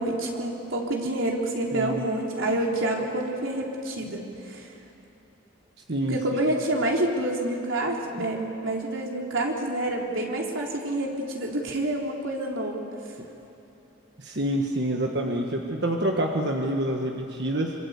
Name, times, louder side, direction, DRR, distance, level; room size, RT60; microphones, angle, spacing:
voice 1, 0.0-4.7 6.1-12.8, right 1 dB, 85° right, -1 dB, 3.8 m, -28 dB
voice 2, 1.7-2.0 5.9-6.2 8.2-8.3 14.2-17.7, right 1 dB, 55° right, 1 dB, 1.6 m, -27 dB
25.5 x 25.5 x 8.4 m, 2.8 s
head